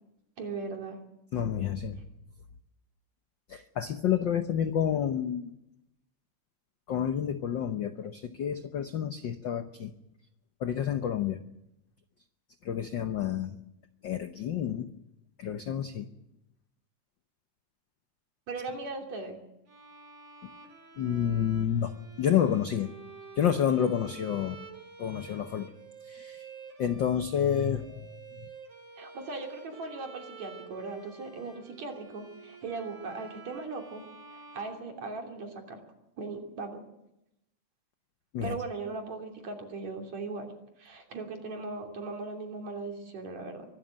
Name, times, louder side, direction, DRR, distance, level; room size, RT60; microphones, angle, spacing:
voice 1, 0.4-1.0 18.5-19.4 29.0-34.0 34.5-35.8 36.2-36.8 38.4-40.5 40.8-43.7, right 3 dB, 65° right, 2 dB, 4.3 m, -38 dB
voice 2, 1.3-2.0 3.5-5.5 6.9-9.9 10.6-11.4 12.6-13.6 14.0-14.9 15.4-16.1 21.0-21.9 22.2-22.9 23.4-24.6 25.0-25.7 26.0-26.5 26.8-28.1 28.4-28.5 38.3-38.6, left 9 dB, 80° left, 8 dB, 1.0 m, -29 dB
Bowed string instrument, 19.7-35.5, right 5 dB, 40° right, 3.8 m, -50 dB
24.0 x 12.5 x 8.9 m, 0.85 s
omnidirectional pair, 3.4 m